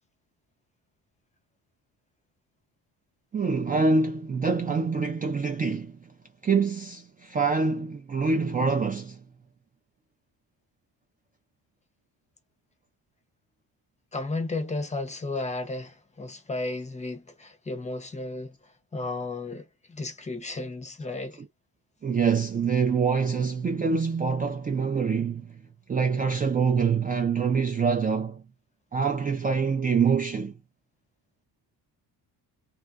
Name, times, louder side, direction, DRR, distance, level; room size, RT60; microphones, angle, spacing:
voice 1, 3.3-6.1 6.4-9.2 22.0-25.6 25.9-28.4 28.9-30.5, right 5 dB, 25° right, 0.3 m, -25 dB
voice 2, 14.1-18.5 18.9-21.4, left 2 dB, 15° left, 0.6 m, -33 dB
3.2 x 2.3 x 2.3 m
cardioid pair, 145°, 41 cm